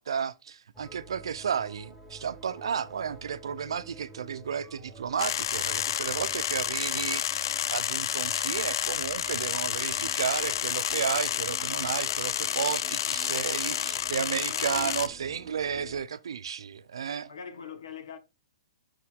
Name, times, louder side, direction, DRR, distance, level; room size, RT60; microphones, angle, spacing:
voice 1, 0.0-7.4 7.7-17.3, right 7 dB, 80° right, 0.6 m, -32 dB
sound 1, 0.7-16.0, right 2 dB, 5° right, 1.0 m, -50 dB
sound 2, 5.2-15.1, left 10 dB, 65° left, 0.4 m, -30 dB
voice 2, 13.6-14.0 14.4-14.9 17.3-18.2, left 7 dB, 90° left, 1.3 m, -43 dB
5.8 x 4.7 x 3.5 m
hypercardioid pair, 140°, 3 cm